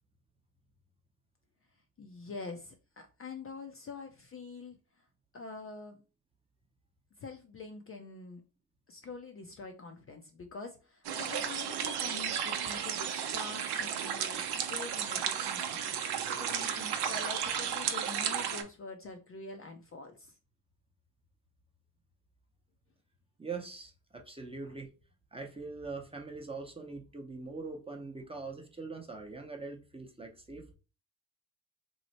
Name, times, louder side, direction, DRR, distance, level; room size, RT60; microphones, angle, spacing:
voice 1, 2.0-5.0 5.3-6.0 7.2-8.4 8.9-20.4 24.6-24.7, left 4 dB, 30° left, 0.5 m, -46 dB
sound 1, 11.0-18.6, right 8 dB, 60° right, 0.7 m, -33 dB
voice 2, 23.4-24.9 25.3-30.7, right 4 dB, 15° right, 0.8 m, -42 dB
3.1 x 2.0 x 4.0 m
supercardioid pair, 70°, 45 cm